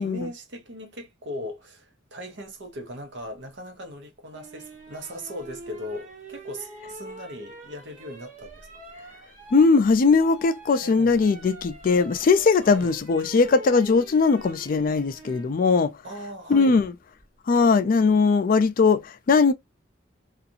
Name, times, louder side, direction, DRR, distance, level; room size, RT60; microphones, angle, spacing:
voice 1, 0.0-8.7 10.8-11.3 12.6-12.9 16.0-16.8, equal, 65° right, 0.8 m, -38 dB
sound 1, 4.3-15.5 17.2-17.6, right 2 dB, 40° right, 1.2 m, -45 dB
voice 2, 9.5-15.9 16.5-16.9 17.5-19.5, left 4 dB, 45° left, 0.4 m, -20 dB
2.5 x 2.4 x 2.6 m
head